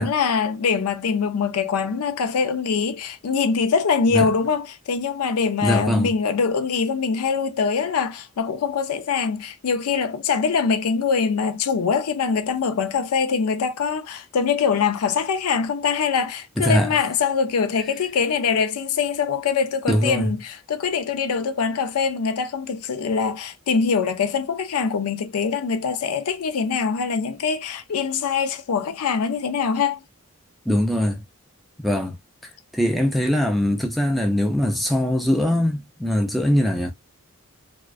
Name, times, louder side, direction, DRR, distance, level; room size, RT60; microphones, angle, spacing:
voice 1, 0.0-30.0, left 5 dB, 85° left, 0.4 m, -23 dB
voice 2, 5.6-6.1 16.6-17.0 19.9-20.3 30.7-31.2 31.8-32.2 32.7-36.9, equal, ahead, 0.3 m, -21 dB
2.4 x 2.1 x 2.4 m
head